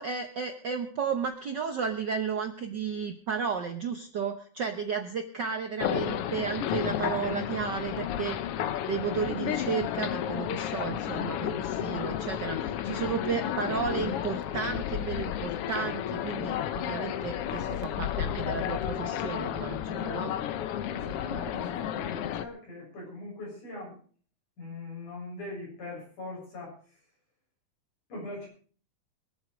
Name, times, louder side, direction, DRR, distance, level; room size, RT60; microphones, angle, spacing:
voice 1, 0.0-8.4 8.8-20.4, right 6 dB, 70° right, 5 dB, 1.0 m, -33 dB
sound 1, 5.8-22.5, left 10 dB, 70° left, 1.4 m, -32 dB
voice 2, 20.9-24.0 24.6-27.0 28.1-28.5, left 2 dB, 90° left, -3 dB, 8.7 m, -41 dB
23.0 x 7.9 x 5.1 m, 0.44 s
omnidirectional pair, 3.4 m